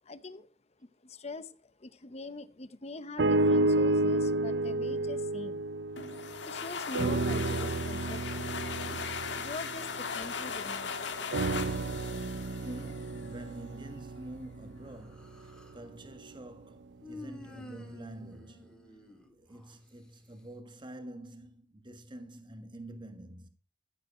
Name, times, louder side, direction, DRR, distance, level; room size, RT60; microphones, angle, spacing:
voice 1, 0.0-0.5 0.8-5.6 6.4-8.5 8.9-9.0 9.3-11.1, left 2 dB, 35° left, 0.8 m, -43 dB
sound 1, 3.2-6.5 6.9-10.7 11.3-15.5 16.2-16.3, right 2 dB, 70° right, 0.6 m, -31 dB
sound 2, 6.0-13.4, left 5 dB, 85° left, 1.6 m, -38 dB
voice 2, 12.6-19.0 19.3-23.5, right 1 dB, 25° right, 1.5 m, -47 dB
Human voice, 14.9-15.9 17.0-19.7, left 2 dB, 5° left, 2.0 m, -50 dB
14.5 x 7.9 x 4.3 m
head